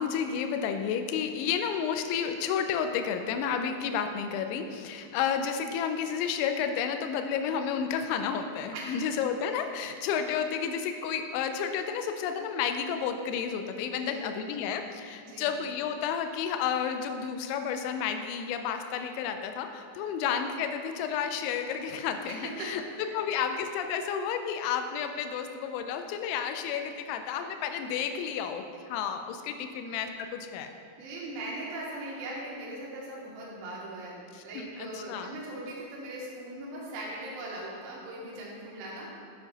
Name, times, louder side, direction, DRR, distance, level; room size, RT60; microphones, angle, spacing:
voice 1, 0.0-30.7 34.3-35.4, left 7 dB, 85° left, 7 dB, 2.8 m, -31 dB
voice 2, 13.9-14.6 15.3-15.5 22.3-22.7 31.0-39.1, right 1 dB, 80° right, -5 dB, 3.5 m, -40 dB
8.5 x 6.7 x 2.9 m, 2.4 s
omnidirectional pair, 5.5 m